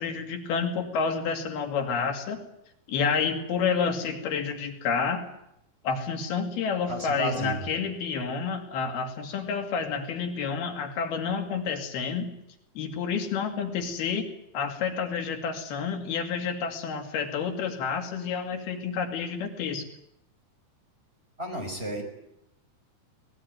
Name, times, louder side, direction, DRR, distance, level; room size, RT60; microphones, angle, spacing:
voice 1, 0.0-2.4 2.9-5.3 5.8-12.3 12.8-14.3 14.5-19.8, left 5 dB, 85° left, 5 dB, 4.4 m, -29 dB
voice 2, 6.9-7.7 21.4-22.0, right 1 dB, 15° right, 4 dB, 4.9 m, -32 dB
23.0 x 19.5 x 9.4 m, 0.81 s
omnidirectional pair, 4.3 m